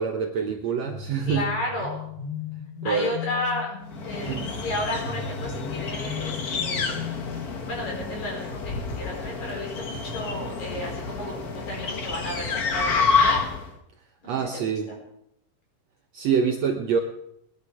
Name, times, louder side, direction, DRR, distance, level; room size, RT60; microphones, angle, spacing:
voice 1, 0.0-1.4 2.8-3.1 4.3-4.5 14.3-14.9 16.1-17.0, right 6 dB, 65° right, 4 dB, 1.8 m, -25 dB
sound 1, 0.8-8.5, left 6 dB, 25° left, 1.4 m, -37 dB
voice 2, 1.3-2.0 2.8-3.7 4.0-7.1 7.7-13.4 14.2-15.0, left 1 dB, 55° left, -1 dB, 5.8 m, -33 dB
sound 2, 3.9-13.7, left 4 dB, 85° left, 0.8 m, -28 dB
20.5 x 11.0 x 4.9 m, 0.77 s
omnidirectional pair, 3.9 m